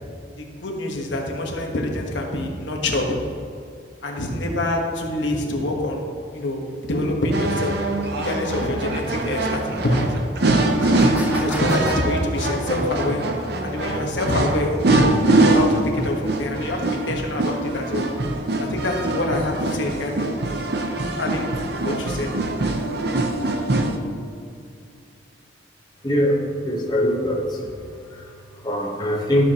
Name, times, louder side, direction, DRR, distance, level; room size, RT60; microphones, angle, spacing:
voice 1, 0.4-3.1 4.0-6.0 6.3-7.7 8.2-10.0 10.8-13.2 13.6-14.7 15.2-18.0 18.6-20.6 21.2-22.3, left 1 dB, 75° left, 0 dB, 1.3 m, -26 dB
sound 1, 6.4-6.5 7.0-7.1 8.0-8.1 9.3-9.4 9.9-10.0 10.6-12.0, equal, 10° right, 0.7 m, -33 dB
sound 2, 7.3-24.0, right 2 dB, 55° right, 0.8 m, -23 dB
voice 2, 26.0-27.7 28.0-29.5, equal, 20° left, -2 dB, 1.1 m, -23 dB
13.5 x 6.9 x 2.9 m, 2.4 s
head